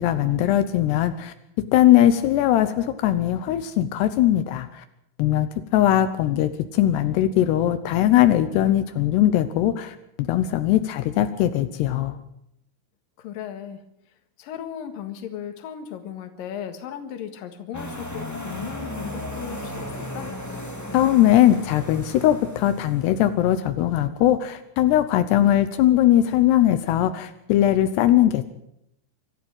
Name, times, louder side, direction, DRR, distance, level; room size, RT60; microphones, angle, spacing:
voice 1, 0.0-1.3 1.7-4.8 5.2-12.2 20.9-28.4, left 12 dB, 85° left, 10 dB, 3.0 m, -20 dB
voice 2, 13.2-13.8 14.4-20.4, left 9 dB, 65° left, 8 dB, 3.2 m, -36 dB
sound 1, 17.7-23.2, left 1 dB, 5° left, 1.8 m, -35 dB
25.5 x 13.0 x 7.8 m, 0.78 s
omnidirectional pair, 4.7 m